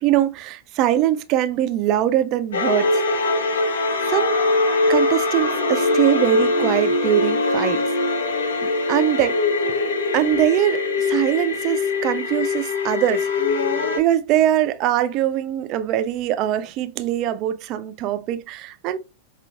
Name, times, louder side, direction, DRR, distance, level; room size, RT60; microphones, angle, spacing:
voice 1, 0.0-2.9 4.1-4.4 4.9-7.8 8.9-9.4 10.1-13.3 14.0-19.0, right 12 dB, 40° right, 0.3 m, -22 dB
sound 1, 2.5-14.0, left 3 dB, 65° left, 0.6 m, -22 dB
5.1 x 2.4 x 2.3 m
figure-of-eight pair, 90°, 0 cm